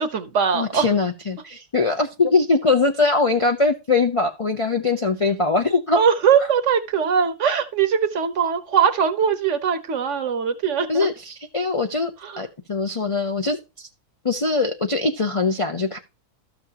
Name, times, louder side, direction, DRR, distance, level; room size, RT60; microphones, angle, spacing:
voice 1, 0.0-0.9 5.9-11.1 12.2-12.4, right 7 dB, 55° right, 1.0 m, -21 dB
voice 2, 0.5-6.0 10.9-12.1 12.4-13.9 14.2-16.0, left 3 dB, 50° left, 0.4 m, -22 dB
13.0 x 6.2 x 2.9 m
omnidirectional pair, 1.7 m